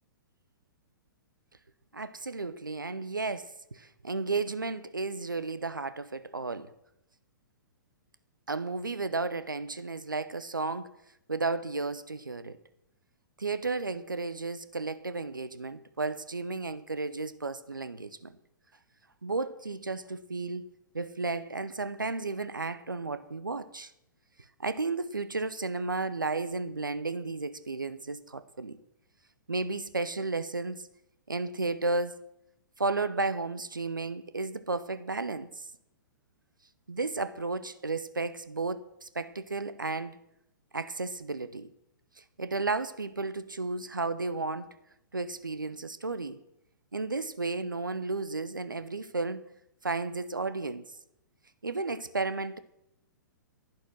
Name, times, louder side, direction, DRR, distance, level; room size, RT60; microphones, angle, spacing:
voice 1, 1.9-6.7 8.5-10.9 11.3-12.6 13.4-18.4 19.2-20.6 20.9-23.9 24.6-28.8 29.5-30.9 31.3-32.2 32.8-35.7 36.9-40.2 40.7-41.7 42.2-44.7 45.1-46.4 46.9-49.4 49.8-50.9 51.6-52.6, right 3 dB, 80° right, 0.8 m, -33 dB
11.0 x 10.5 x 6.1 m
figure-of-eight pair, 115°, 11 cm